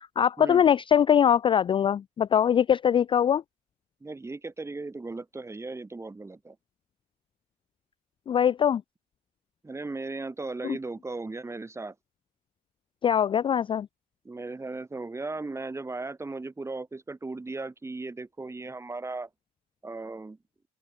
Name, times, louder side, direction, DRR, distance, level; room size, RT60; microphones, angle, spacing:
voice 1, 0.2-3.4 8.3-8.8 10.6-10.8 13.0-13.9, left 9 dB, 30° left, 0.3 m, -22 dB
voice 2, 4.0-6.6 9.6-11.9 14.2-19.3 19.8-20.4, right 3 dB, 15° right, 3.4 m, -37 dB
open air
cardioid pair, 110°, 17 cm